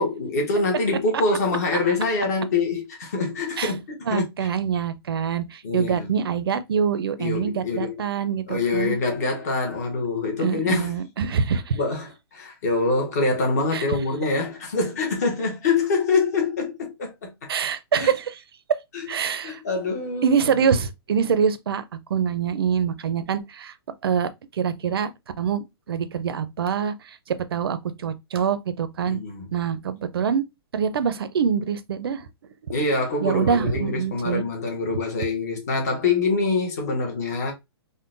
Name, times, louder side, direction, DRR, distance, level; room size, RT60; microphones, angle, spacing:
voice 1, 0.0-4.2 5.6-6.2 7.2-8.0 8.5-10.9 11.7-17.5 18.0-18.1 18.9-19.1 19.4-20.3 29.1-29.5 32.7-37.5, left 3 dB, 40° left, 0.9 m, -25 dB
voice 2, 4.1-9.0 10.4-11.8 13.7-14.0 17.5-18.4 19.1-19.6 20.2-21.8 22.1-23.7 24.0-25.1 25.4-29.2 29.5-30.4 30.7-32.3 33.2-34.4, right 7 dB, 65° right, 0.4 m, -25 dB
3.7 x 2.1 x 2.4 m
hypercardioid pair, 175°, 14 cm